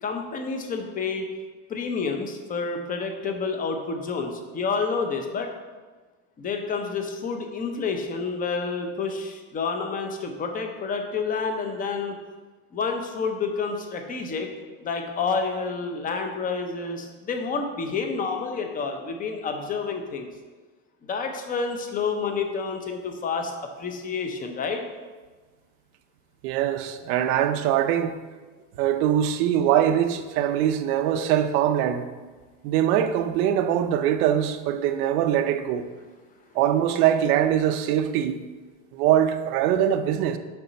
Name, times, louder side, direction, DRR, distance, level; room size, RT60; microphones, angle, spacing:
voice 1, 0.0-1.3 1.7-5.5 6.4-12.2 12.7-14.5 14.8-20.3 21.1-23.5 23.8-24.8, left 4 dB, 20° left, 0.6 m, -29 dB
voice 2, 26.4-28.2 28.8-32.1 32.6-35.9 36.5-38.4 38.9-40.4, right 10 dB, 85° right, 0.7 m, -22 dB
7.0 x 5.6 x 4.0 m
cardioid pair, 150°, 43 cm